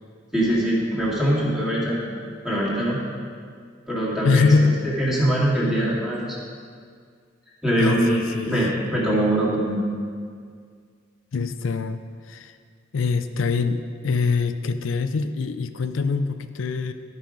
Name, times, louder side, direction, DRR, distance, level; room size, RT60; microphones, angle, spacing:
voice 1, 0.3-2.0 2.4-3.0 3.9-6.3 7.6-9.8, right 1 dB, 5° right, -7 dB, 2.1 m, -23 dB
voice 2, 4.2-4.8 7.8-8.6 11.3-12.0 12.3-12.6 12.9-16.9, left 4 dB, 80° left, 9 dB, 0.4 m, -23 dB
11.5 x 5.6 x 5.1 m, 2.1 s
head